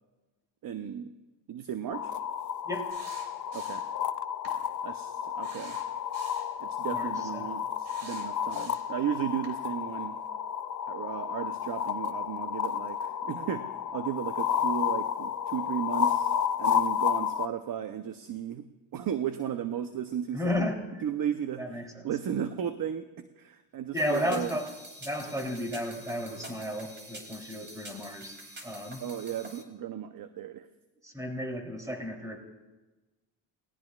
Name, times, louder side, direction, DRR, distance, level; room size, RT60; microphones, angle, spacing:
voice 1, 0.6-1.1 1.5-2.1 3.5-3.9 4.8-5.8 6.6-10.2 10.9-13.7 13.9-16.3 16.6-18.7 18.9-20.7 21.0-24.5 29.0-30.7, right 9 dB, 45° right, 9 dB, 0.8 m, -35 dB
sound 1, 1.9-17.5, left 8 dB, 40° left, 0.6 m, -31 dB
sound 2, 2.9-4.0 4.4-4.6 5.4-6.5 7.8-9.0 9.4-9.6, right 4 dB, 75° right, 4.5 m, -49 dB
voice 2, 6.9-7.5 20.3-21.0 21.6-22.1 23.9-24.7 25.0-29.0 31.0-32.4, left 1 dB, 5° right, 1 dB, 3.2 m, -33 dB
sound 3, 24.0-29.6, right 1 dB, 20° right, 2.8 m, -47 dB
29.5 x 19.0 x 2.4 m, 1.1 s
cardioid pair, 95°, 48 cm